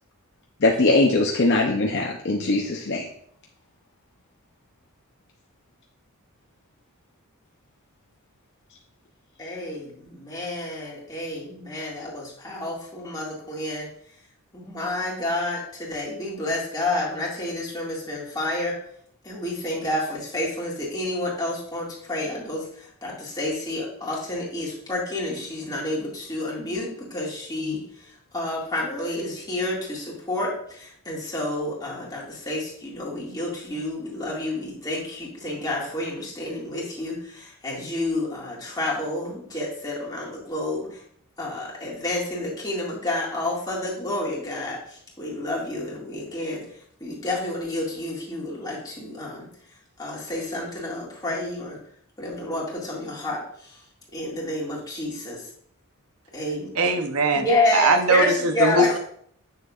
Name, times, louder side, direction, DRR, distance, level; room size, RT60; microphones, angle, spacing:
voice 1, 0.6-3.1, left 2 dB, 55° left, 0 dB, 0.7 m, -21 dB
voice 2, 9.4-13.9 14.5-18.7 19.2-27.8 28.3-40.9 41.4-44.8 45.2-46.6 47.0-49.5 50.0-51.8 52.2-53.4 54.1-55.4 56.3-56.7 57.4-58.9, left 2 dB, 20° left, -5 dB, 2.2 m, -29 dB
voice 3, 56.7-59.0, right 2 dB, 90° right, 6 dB, 0.8 m, -21 dB
7.4 x 6.3 x 2.5 m, 0.64 s
head